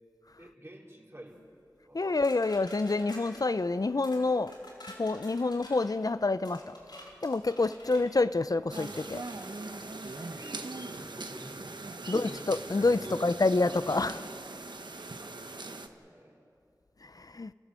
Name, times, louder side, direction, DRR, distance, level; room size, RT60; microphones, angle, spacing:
voice 1, 0.4-1.5 1.9-2.0 7.9-8.0 10.3-12.5 12.9-13.4 15.2-16.4, right 1 dB, 35° right, 3.9 m, -49 dB
voice 2, 1.9-4.5 5.0-6.7 7.2-9.2 12.1-14.2 17.0-17.5, left 3 dB, 55° left, 0.5 m, -28 dB
sound 1, 2.2-3.4 4.0-4.2 4.5-5.9 6.4-8.1 8.8-9.5 10.0-10.3, left 1 dB, 85° left, 4.7 m, -50 dB
sound 2, 8.7-15.9, right 3 dB, 90° right, 1.0 m, -41 dB
29.0 x 14.5 x 7.6 m
wide cardioid pair, 45°, 7 cm